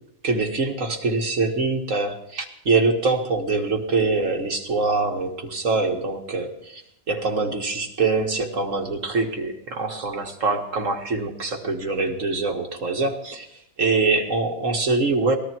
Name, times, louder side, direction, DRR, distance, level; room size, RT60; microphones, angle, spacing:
voice 1, 0.2-6.8 7.1-13.5 13.8-15.4, right 3 dB, 60° right, 2 dB, 2.2 m, -24 dB
19.5 x 13.0 x 4.6 m, 0.77 s
omnidirectional pair, 1.5 m